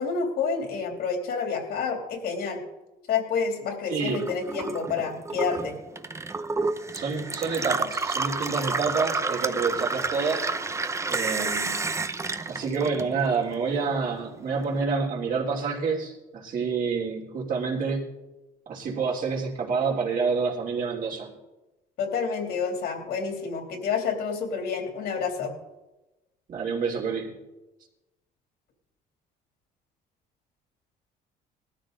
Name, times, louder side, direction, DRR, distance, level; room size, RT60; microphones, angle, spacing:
voice 1, 0.0-2.6 3.1-5.7 22.0-25.5, left 5 dB, 70° left, 3 dB, 3.1 m, -29 dB
voice 2, 3.9-4.3 6.9-10.5 11.1-11.8 12.5-18.0 18.7-21.3 26.5-27.3, right 5 dB, 55° right, -2 dB, 3.5 m, -28 dB
Gurgling / Water tap faucet / Sink (filling or washing), 4.0-13.5 13.8-14.7, right 3 dB, 15° right, 0.7 m, -30 dB
19.0 x 13.5 x 3.9 m, 1.1 s
cardioid pair, 110°, 17 cm